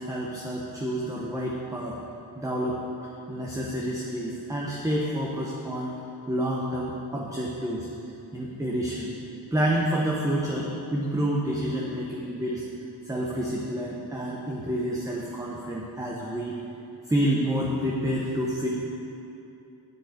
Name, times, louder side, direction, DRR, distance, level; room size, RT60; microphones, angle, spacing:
voice 1, 0.0-2.0 2.3-2.8 3.3-5.9 6.3-7.9 8.3-9.1 9.5-12.6 13.0-16.5 17.1-18.7, equal, 10° right, -3 dB, 1.2 m, -28 dB
8.4 x 6.0 x 7.7 m, 2.9 s
cardioid pair, 70°, 38 cm